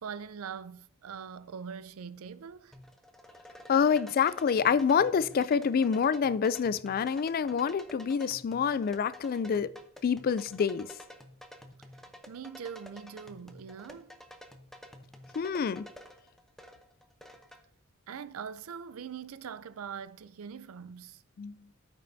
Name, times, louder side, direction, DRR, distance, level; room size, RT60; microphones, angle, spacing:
voice 1, 0.0-2.7 12.3-14.2 18.1-21.2, right 7 dB, 80° right, 0.5 m, -42 dB
sound 1, 2.7-17.6, equal, ahead, 0.7 m, -51 dB
voice 2, 3.7-9.7 10.0-10.9 15.3-15.9 21.4-21.6, left 6 dB, 45° left, 0.3 m, -27 dB
13.5 x 5.4 x 2.7 m
head